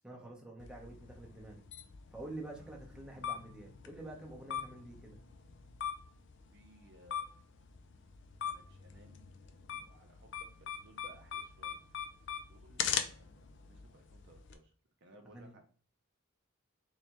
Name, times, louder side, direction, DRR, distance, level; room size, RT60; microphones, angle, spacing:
voice 1, 0.0-1.6 2.1-5.2 15.3-15.6, right 2 dB, 5° right, -1 dB, 0.7 m, -48 dB
sound 1, 0.6-14.5, left 8 dB, 55° left, 0.4 m, -42 dB
voice 2, 6.5-7.5 8.4-9.2 9.8-11.8 12.5-13.4 13.7-14.7 15.0-15.6, right 1 dB, 55° right, 4 dB, 0.6 m, -61 dB
3.6 x 3.3 x 2.9 m, 0.42 s
head